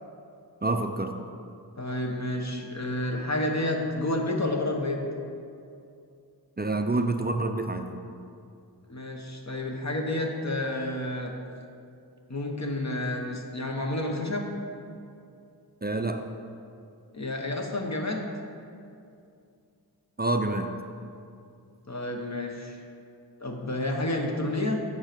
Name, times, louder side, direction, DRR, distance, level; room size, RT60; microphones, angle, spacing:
voice 1, 0.6-1.2 6.6-7.9 15.8-16.3 20.2-20.7, right 2 dB, 25° right, 5 dB, 0.5 m, -27 dB
voice 2, 1.8-5.0 8.9-11.3 12.3-14.5 17.1-18.3 21.9-22.8 23.4-24.8, left 1 dB, 40° left, 1 dB, 1.2 m, -30 dB
8.6 x 6.3 x 5.1 m, 2.5 s
wide cardioid pair, 55°, 41 cm